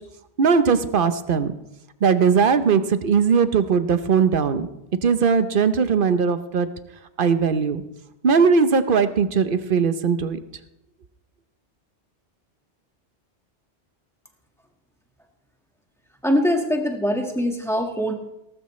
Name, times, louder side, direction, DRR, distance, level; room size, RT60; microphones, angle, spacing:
voice 1, 0.4-1.5 2.0-4.7 5.0-6.7 7.2-7.8 8.2-10.4, right 6 dB, 55° right, 11 dB, 0.9 m, -19 dB
voice 2, 16.2-18.1, equal, ahead, 2 dB, 1.7 m, -22 dB
18.0 x 13.0 x 3.2 m, 0.88 s
omnidirectional pair, 1.2 m